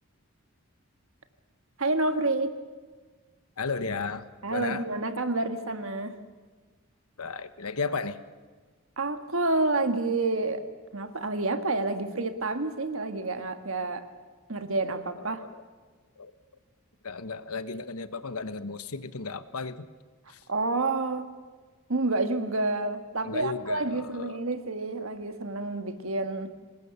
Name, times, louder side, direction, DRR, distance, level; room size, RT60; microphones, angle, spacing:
voice 1, 1.8-2.6 4.4-6.2 9.0-10.6 10.9-14.0 14.5-15.4 20.5-21.3 21.9-26.5, right 2 dB, 65° right, 8 dB, 1.6 m, -29 dB
voice 2, 3.6-4.8 7.2-8.2 15.2-15.6 16.2-16.3 17.0-19.8 20.3-20.4 23.2-24.5, left 4 dB, 80° left, 12 dB, 1.2 m, -34 dB
24.5 x 20.5 x 7.0 m, 1.4 s
head